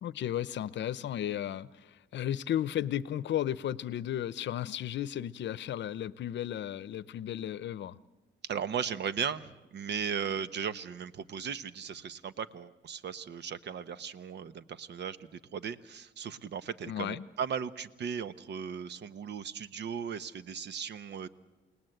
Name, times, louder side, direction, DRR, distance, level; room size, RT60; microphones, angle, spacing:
voice 1, 0.0-8.0 16.9-17.3, left 11 dB, 65° left, 18 dB, 0.8 m, -34 dB
voice 2, 8.5-21.3, right 7 dB, 60° right, 14 dB, 1.0 m, -37 dB
29.0 x 18.5 x 7.9 m, 1.1 s
cardioid pair, 90°, 20 cm